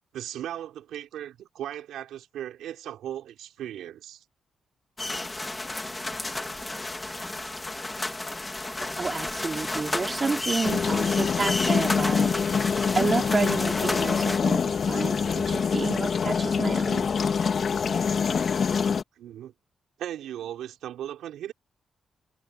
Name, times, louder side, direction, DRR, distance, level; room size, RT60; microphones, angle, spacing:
voice 1, 0.1-4.2 6.5-6.7 19.1-19.5 20.0-21.5, right 11 dB, 90° right, 3.8 m, -37 dB
sound 1, 5.0-14.4, left 2 dB, 20° left, 3.7 m, -32 dB
voice 2, 9.0-17.1, right 4 dB, 40° right, 4.6 m, -30 dB
sound 2, 10.6-19.0, left 6 dB, 55° left, 2.4 m, -25 dB
cardioid pair, 70°, 0 cm